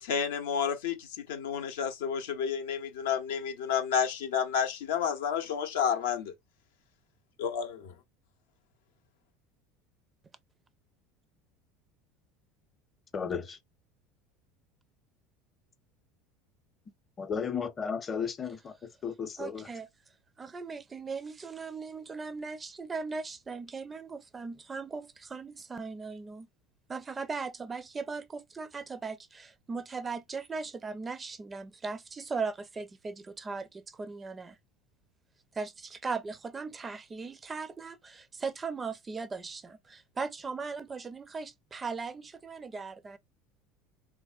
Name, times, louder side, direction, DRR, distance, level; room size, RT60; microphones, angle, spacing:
voice 1, 0.0-6.3 7.4-7.8, left 7 dB, 70° left, 0.6 m, -30 dB
voice 2, 13.1-13.6 17.2-19.7, left 6 dB, 30° left, 0.7 m, -34 dB
voice 3, 19.4-19.9 20.4-26.5 26.9-34.6 35.5-43.2, right 4 dB, 25° right, 0.4 m, -38 dB
3.3 x 2.1 x 2.3 m
figure-of-eight pair, 70°, 0 cm